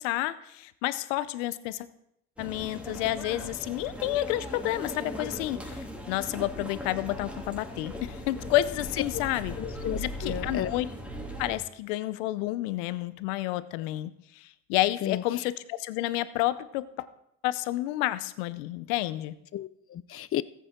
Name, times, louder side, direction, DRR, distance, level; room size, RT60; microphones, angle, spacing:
voice 1, 0.0-1.9 2.4-9.6 10.0-10.9 11.4-17.1 17.4-19.4, left 16 dB, 85° left, 15 dB, 0.6 m, -30 dB
sound 1, 2.4-11.6, equal, 5° right, 2.9 m, -39 dB
voice 2, 9.6-10.7 15.0-15.2 19.5-20.4, left 12 dB, 40° left, 18 dB, 0.5 m, -33 dB
14.5 x 8.3 x 3.7 m, 0.76 s
hypercardioid pair, 65°, 36 cm